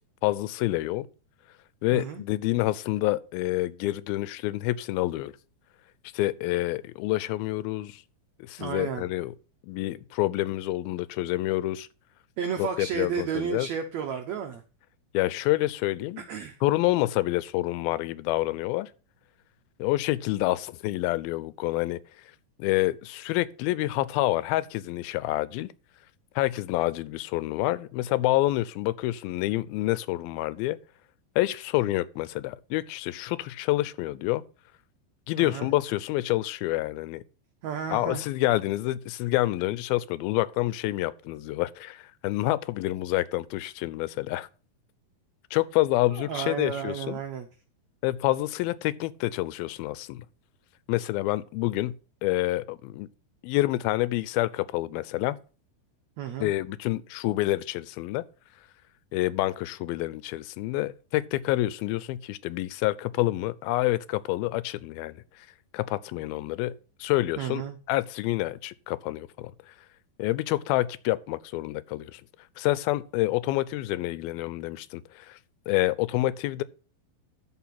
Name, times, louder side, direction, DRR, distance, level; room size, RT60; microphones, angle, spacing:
voice 1, 0.2-1.1 1.8-5.3 6.1-8.0 8.4-9.3 9.6-11.9 12.6-13.7 15.1-16.3 16.6-18.9 19.8-22.0 22.6-25.7 26.4-30.8 31.4-34.4 35.3-37.2 37.9-44.5 45.5-47.2 48.0-50.3 50.9-51.9 52.2-53.1 53.4-55.4 56.4-58.2 59.1-65.5 65.7-66.7 67.0-67.6 67.9-69.5 70.2-72.2 72.6-75.4 75.7-76.6, left 17 dB, 85° left, 2.5 m, -28 dB
voice 2, 1.9-2.2 8.6-9.1 12.4-14.6 16.2-16.6 35.4-35.7 37.6-38.2 46.1-47.5 56.2-56.5 67.4-67.8, right 7 dB, 90° right, 1.5 m, -32 dB
13.0 x 4.6 x 5.8 m
omnidirectional pair, 4.2 m